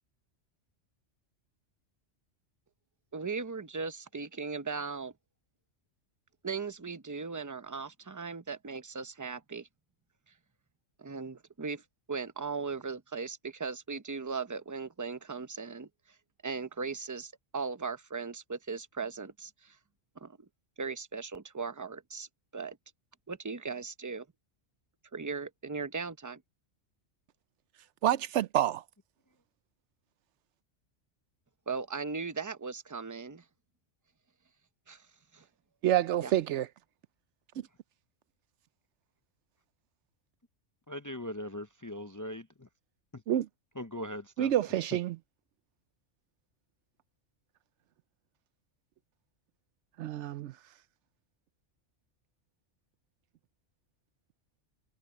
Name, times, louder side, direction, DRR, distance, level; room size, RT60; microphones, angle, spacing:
voice 1, 3.1-5.1 6.4-9.7 11.0-11.8 12.1-15.9 16.4-19.8 20.2-20.5 20.8-22.3 22.5-22.8 23.3-24.3 25.1-26.4 31.7-33.4 34.9-35.0 35.3-35.4 36.2-36.3, right 4 dB, 20° right, 0.7 m, -38 dB
voice 2, 28.0-28.8 35.8-36.7 43.3-43.5 44.4-45.2 50.0-50.5, right 12 dB, 75° right, 0.9 m, -28 dB
voice 3, 40.9-42.7 43.1-43.2 43.7-44.5, left 1 dB, 20° left, 0.6 m, -40 dB
omnidirectional pair, 1.2 m